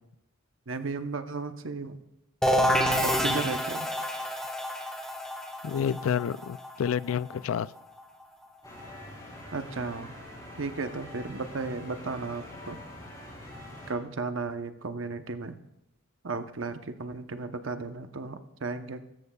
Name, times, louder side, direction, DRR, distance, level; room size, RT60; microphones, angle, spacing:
voice 1, 0.7-2.0 3.0-3.9 9.5-10.1 10.5-12.8 13.9-15.6 16.2-19.0, right 3 dB, 75° right, 8 dB, 0.9 m, -34 dB
sound 1, 2.4-8.0, equal, 5° left, 1.2 m, -28 dB
voice 2, 5.6-7.7, left 8 dB, 90° left, 18 dB, 0.4 m, -29 dB
sound 2, 8.6-13.9, left 1 dB, 20° left, 5.8 m, -44 dB
23.0 x 13.5 x 2.3 m, 0.85 s
head